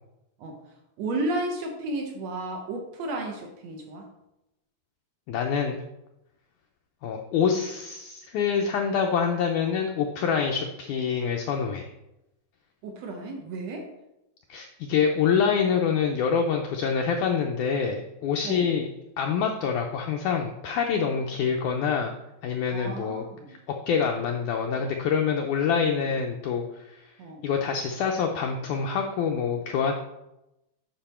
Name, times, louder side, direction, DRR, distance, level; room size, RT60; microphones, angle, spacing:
voice 1, 1.0-4.1 12.8-13.9 18.4-18.7 21.6-22.1 22.7-23.5 27.2-27.4, right 2 dB, 65° right, 3 dB, 1.7 m, -33 dB
voice 2, 5.3-5.8 7.0-11.9 14.5-18.9 19.2-22.1 22.4-23.6 23.9-27.1 27.4-29.9, left 6 dB, 85° left, 2 dB, 1.8 m, -26 dB
9.0 x 6.0 x 4.3 m, 0.91 s
omnidirectional pair, 4.3 m